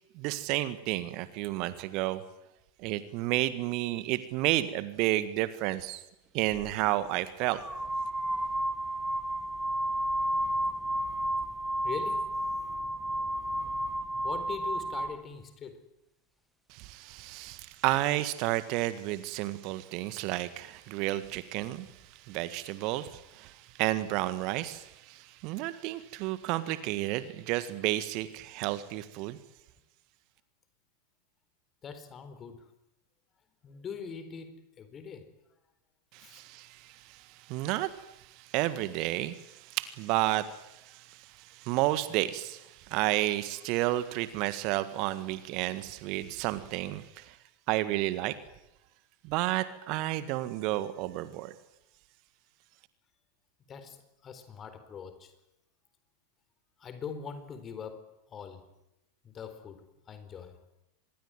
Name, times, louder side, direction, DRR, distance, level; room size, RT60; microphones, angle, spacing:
voice 1, 0.1-2.2 2.8-6.0 6.3-7.6 16.7-29.4 36.1-47.4 47.7-48.4 49.2-51.5, right 16 dB, 40° right, 14 dB, 1.6 m, -31 dB
sound 1, 7.5-15.2, right 1 dB, 5° right, 1.5 m, -32 dB
voice 2, 11.8-12.3 14.2-15.8 31.8-32.6 33.6-35.3 36.2-36.4 53.7-54.0 54.2-55.3 56.8-58.0 58.3-58.6 59.2-59.8 60.1-60.6, left 6 dB, 25° left, 10 dB, 4.3 m, -42 dB
25.5 x 21.5 x 9.3 m, 0.91 s
figure-of-eight pair, 90°, 0 cm